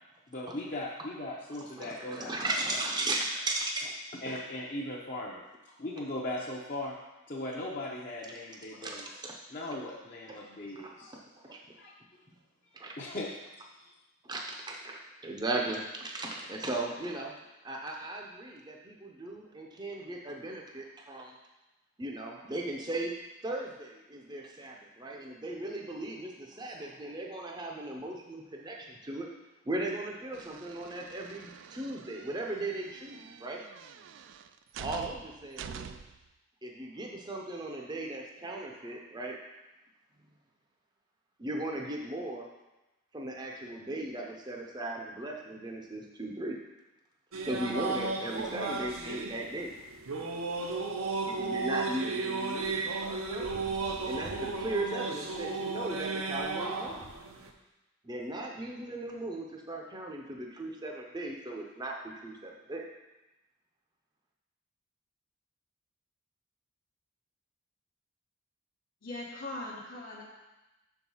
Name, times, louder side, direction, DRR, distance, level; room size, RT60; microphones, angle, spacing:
voice 1, 0.3-2.6 4.2-5.4 5.8-6.9 7.3-9.1 9.5-11.1 11.8-11.9 12.7-13.3, left 1 dB, 40° left, -3 dB, 0.7 m, -38 dB
voice 2, 1.7-3.9 8.8-9.3 9.7-9.8 10.3-10.4 10.7-10.9 11.4-11.6 12.7-12.9 14.2-17.3 17.6-21.4 22.0-23.1 23.4-29.3 29.7-33.6 34.8-35.9 36.6-39.4 41.4-42.5 43.1-46.6 47.5-49.7 51.2-53.7 54.0-57.1 58.0-62.8, right 2 dB, 20° right, 0 dB, 0.6 m, -37 dB
sound 1, 30.3-36.2, right 7 dB, 60° right, 0.3 m, -47 dB
sound 2, 47.3-57.5, right 3 dB, 80° right, 0.7 m, -34 dB
voice 3, 69.0-70.2, left 2 dB, 75° left, -5 dB, 1.1 m, -40 dB
6.2 x 4.6 x 5.5 m, 1.0 s
head